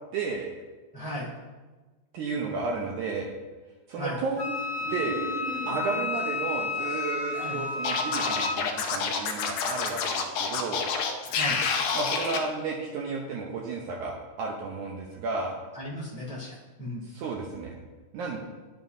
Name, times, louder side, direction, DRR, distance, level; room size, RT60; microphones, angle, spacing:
voice 1, 0.1-0.5 2.1-3.3 3.9-4.5 4.9-5.2 5.7-10.9 11.9-15.6 17.0-17.8 18.1-18.4, right 4 dB, 80° right, -1 dB, 1.8 m, -32 dB
voice 2, 0.9-1.3 4.0-4.1 7.4-7.6 11.3-11.6 15.7-17.0, left 1 dB, 5° right, -8 dB, 1.5 m, -36 dB
Wind instrument woodwind instrument, 4.4-8.6, left 3 dB, 45° left, 0.5 m, -32 dB
sound 1, 4.8-6.1 6.7-7.6, right 4 dB, 60° right, 2.5 m, -38 dB
Scratching (performance technique), 7.8-12.4, left 5 dB, 80° left, 1.8 m, -28 dB
11.5 x 7.1 x 2.6 m, 1.3 s
omnidirectional pair, 4.4 m